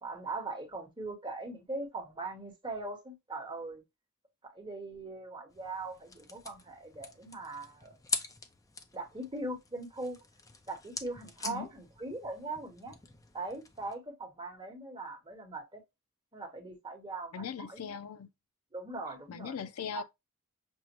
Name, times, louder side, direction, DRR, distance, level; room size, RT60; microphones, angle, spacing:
voice 1, 0.0-3.8 4.4-8.0 8.9-10.2 10.7-13.0 13.3-15.8 16.3-18.0 18.7-19.5 19.9-20.0, right 2 dB, 20° right, 1.1 m, -40 dB
sound 1, 5.5-13.9, left 4 dB, 15° left, 0.4 m, -43 dB
voice 2, 17.3-18.3 19.3-20.0, left 7 dB, 80° left, 0.5 m, -39 dB
6.2 x 2.1 x 3.0 m
head